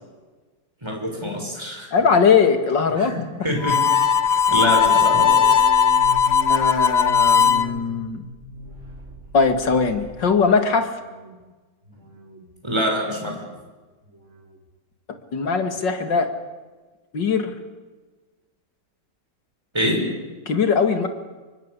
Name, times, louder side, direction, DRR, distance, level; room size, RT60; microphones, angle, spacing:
voice 1, 0.8-1.9 2.9-3.8 4.2-5.4 12.6-13.4 19.7-20.1, equal, 15° right, 2 dB, 6.9 m, -25 dB
voice 2, 1.9-3.1 6.5-8.2 9.3-10.9 15.3-16.3 17.1-17.5 20.5-21.1, left 5 dB, 80° left, 7 dB, 3.0 m, -20 dB
Harmonica, 3.6-7.7, left 6 dB, 45° left, 1.1 m, -17 dB
sound 1, 5.1-10.5 10.8-11.4 11.8-12.5 12.9-13.6 14.0-14.7 15.2-15.7 16.3-16.4, equal, 40° right, 3.8 m, -39 dB
26.5 x 23.5 x 8.4 m, 1.3 s
omnidirectional pair, 1.9 m